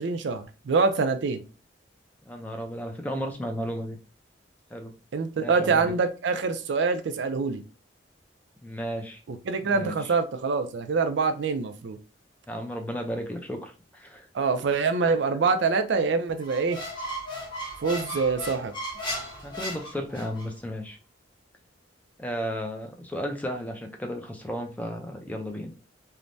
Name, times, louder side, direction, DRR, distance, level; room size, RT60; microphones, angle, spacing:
voice 1, 0.0-1.4 5.1-7.6 9.3-12.0 14.3-16.8 17.8-18.7, right 4 dB, 65° right, 0.4 m, -25 dB
voice 2, 2.2-4.0 4.7-4.9 5.4-5.9 8.6-9.2 9.6-10.2 12.5-14.3 19.4-21.0 22.2-25.7, equal, 10° left, 0.4 m, -34 dB
Squeak, 16.4-20.5, equal, 25° left, 1.0 m, -36 dB
3.2 x 2.1 x 2.5 m
head